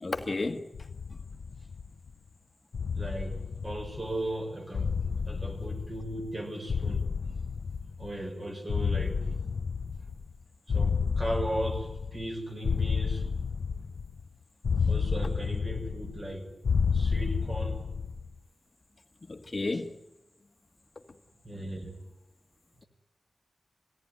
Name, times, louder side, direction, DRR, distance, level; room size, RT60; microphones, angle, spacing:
voice 1, 0.0-0.6 19.3-19.9, left 3 dB, 35° left, 1.7 m, -32 dB
sound 1, 0.7-2.1 2.7-4.3 4.7-6.4 6.7-8.3 8.7-10.4 10.7-12.3 12.6-14.2 14.6-16.3 16.6-18.3, left 5 dB, 85° left, 0.8 m, -31 dB
voice 2, 2.9-7.1 8.0-9.2 10.7-13.3 14.8-16.6 16.9-17.9 21.4-22.0, right 1 dB, 30° right, 6.3 m, -37 dB
24.5 x 17.5 x 9.7 m
wide cardioid pair, 120°, 0 cm